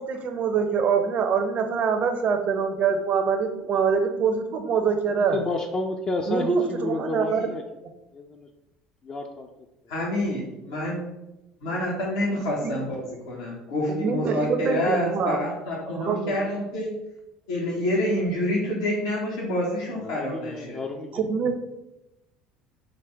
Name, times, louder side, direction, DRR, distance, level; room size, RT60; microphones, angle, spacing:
voice 1, 0.0-5.4 6.3-7.4 12.6-12.7 13.9-15.4 15.9-16.4 21.1-21.5, right 6 dB, 50° right, 6 dB, 0.6 m, -24 dB
voice 2, 5.1-7.6 8.1-8.5 9.0-9.5 10.0-10.1 19.9-21.2, left 2 dB, 30° left, 2 dB, 0.4 m, -31 dB
voice 3, 9.9-11.0 11.6-12.9 13.3-16.9 17.5-20.8, left 1 dB, 80° left, -4 dB, 0.9 m, -27 dB
3.9 x 2.1 x 4.4 m, 0.95 s
hypercardioid pair, 70°, 3 cm